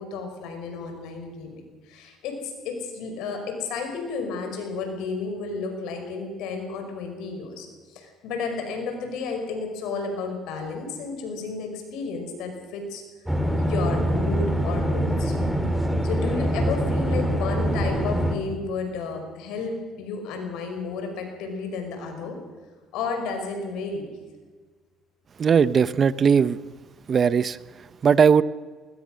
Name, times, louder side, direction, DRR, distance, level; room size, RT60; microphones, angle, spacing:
voice 1, 0.0-13.0 13.6-15.3 16.0-22.4 22.9-24.1, left 4 dB, 80° left, 5 dB, 5.4 m, -32 dB
sound 1, 13.3-18.4, equal, ahead, 3.6 m, -24 dB
voice 2, 25.4-26.6 27.1-27.6 28.0-28.4, right 6 dB, 45° right, 17 dB, 0.8 m, -18 dB
21.0 x 20.0 x 6.4 m, 1.4 s
supercardioid pair, 80°, 0 cm